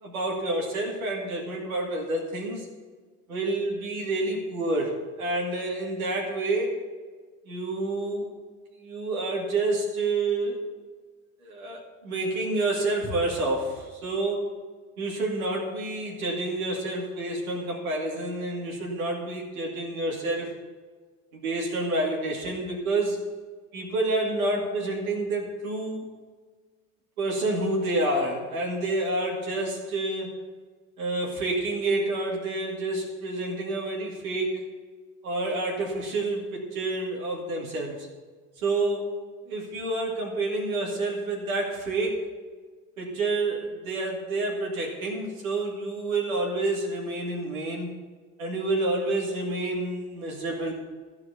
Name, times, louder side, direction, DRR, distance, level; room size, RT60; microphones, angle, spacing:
voice 1, 0.0-2.7 3.3-6.8 7.5-8.3 8.8-10.6 11.4-14.5 15.0-20.5 21.3-23.2 23.7-26.0 27.2-30.3 31.0-34.6 35.2-38.1 38.6-39.1 39.5-42.2 43.0-47.9 48.4-50.7, right 2 dB, 85° right, -1 dB, 2.5 m, -28 dB
13.5 x 4.8 x 8.2 m, 1.4 s
hypercardioid pair, 70°, 41 cm